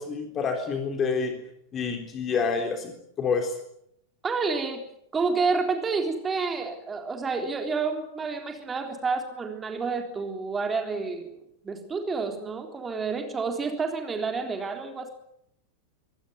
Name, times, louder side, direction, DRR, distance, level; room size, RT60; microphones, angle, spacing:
voice 1, 0.0-1.3 1.7-2.9 3.2-3.5, left 5 dB, 25° left, 4 dB, 3.8 m, -27 dB
voice 2, 4.2-4.8 5.1-11.4 11.6-15.1, right 4 dB, 15° right, 5 dB, 3.7 m, -29 dB
24.5 x 18.5 x 9.4 m, 0.76 s
figure-of-eight pair, 90°, 0 cm